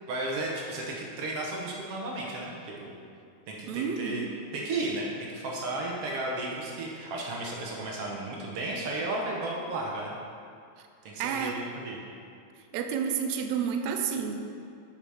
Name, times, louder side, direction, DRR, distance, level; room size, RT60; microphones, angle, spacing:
voice 1, 0.1-3.0 3.5-4.3 4.5-10.2 11.0-12.0, right 2 dB, 65° right, -2 dB, 1.8 m, -34 dB
voice 2, 3.7-4.3 11.2-11.6 12.7-14.4, right 7 dB, 80° right, 5 dB, 1.9 m, -30 dB
9.0 x 5.8 x 4.9 m, 2.3 s
omnidirectional pair, 3.3 m